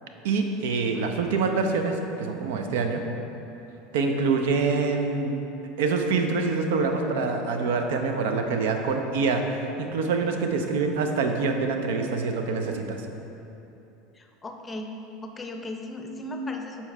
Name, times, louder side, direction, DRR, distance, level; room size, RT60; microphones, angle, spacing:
voice 1, 0.2-3.0 3.9-5.4 5.8-13.0, right 4 dB, 70° right, 5 dB, 0.5 m, -25 dB
voice 2, 14.2-14.9 15.2-16.9, left 1 dB, 20° left, 4 dB, 0.6 m, -36 dB
7.0 x 4.2 x 3.3 m, 2.9 s
hypercardioid pair, 80°, 0 cm